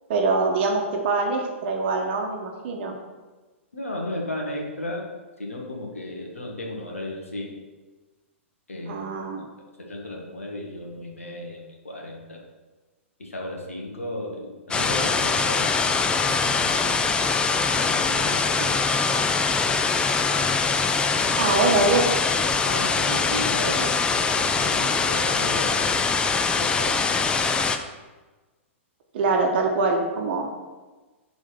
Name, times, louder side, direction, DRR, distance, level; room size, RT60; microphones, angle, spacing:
voice 1, 0.1-3.0 8.9-9.5 18.6-18.8 21.4-22.2 29.1-30.5, right 3 dB, 55° right, 2 dB, 1.0 m, -24 dB
voice 2, 3.7-5.1 5.4-7.5 8.7-9.1 9.8-12.4 13.2-15.7 16.2-16.9 17.8-18.4 21.1-21.5 22.6-25.7 26.5-27.0, left 1 dB, 90° left, 0 dB, 1.5 m, -34 dB
sound 1, 14.7-27.8, left 4 dB, 15° left, 0.4 m, -23 dB
4.9 x 4.1 x 5.6 m, 1.2 s
hypercardioid pair, 115°, 7 cm